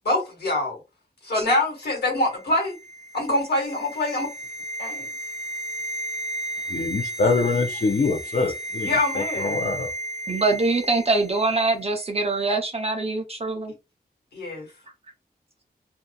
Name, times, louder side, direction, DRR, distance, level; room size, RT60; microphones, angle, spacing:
voice 1, 0.0-0.8 1.2-2.8 3.1-4.3 4.8-5.1 8.8-9.6 14.3-14.7, left 1 dB, 80° left, 1.5 m, -25 dB
sound 1, 2.2-11.4 11.7-11.8, right 1 dB, 5° right, 1.3 m, -33 dB
voice 2, 6.7-9.9, left 4 dB, 50° left, 0.5 m, -24 dB
voice 3, 10.3-13.7, right 3 dB, 40° right, 0.6 m, -23 dB
2.7 x 2.4 x 2.2 m
wide cardioid pair, 85°, 17 cm